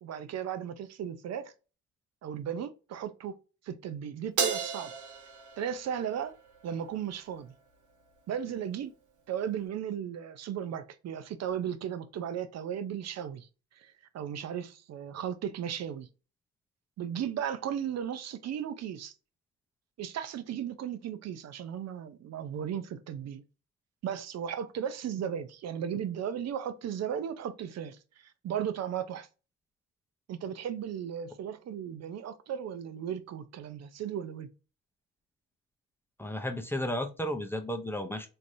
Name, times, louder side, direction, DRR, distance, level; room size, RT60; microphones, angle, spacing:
voice 1, 0.0-1.5 2.2-3.4 3.6-4.9 5.6-6.3 6.6-7.5 8.3-8.9 9.3-16.1 17.0-19.1 20.0-23.4 24.0-29.3 30.3-34.5, right 9 dB, 60° right, 0.5 m, -36 dB
Crash cymbal, 4.4-6.9, right 6 dB, 85° right, 0.8 m, -34 dB
voice 2, 36.2-38.3, left 1 dB, 10° left, 0.5 m, -33 dB
3.2 x 2.6 x 2.6 m
cardioid pair, 80°, 30 cm